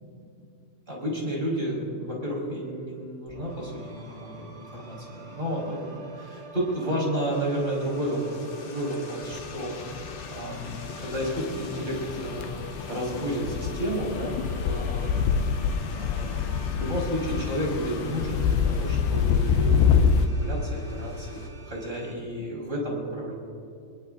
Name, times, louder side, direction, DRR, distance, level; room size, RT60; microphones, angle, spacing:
voice 1, 0.9-12.5 12.9-15.1 15.9-23.3, equal, 10° right, -4 dB, 4.7 m, -32 dB
sound 1, 3.3-22.1, right 3 dB, 35° right, 1.7 m, -48 dB
sound 2, 7.3-21.5, left 5 dB, 65° left, 3.2 m, -47 dB
sound 3, 9.2-20.3, left 6 dB, 85° left, 2.1 m, -26 dB
25.0 x 21.5 x 2.6 m, 2.6 s
omnidirectional pair, 4.9 m